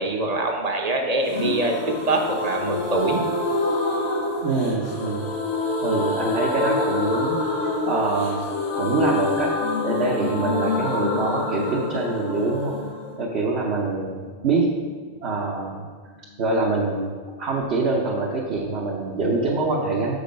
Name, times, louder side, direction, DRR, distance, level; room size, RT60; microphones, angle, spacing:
voice 1, 0.0-3.2 5.8-6.0, right 2 dB, 35° right, 3 dB, 0.9 m, -24 dB
sound 1, 1.3-14.9 15.1-15.2 15.5-15.6, left 3 dB, 85° left, 1.5 m, -27 dB
voice 2, 4.4-5.3 5.8-7.4 7.8-8.5 8.8-9.5 9.8-12.7 13.2-14.7 15.2-15.8 16.4-17.1 17.4-20.2, right 3 dB, 65° right, -3 dB, 1.2 m, -24 dB
6.8 x 6.4 x 5.2 m, 1.5 s
omnidirectional pair, 1.2 m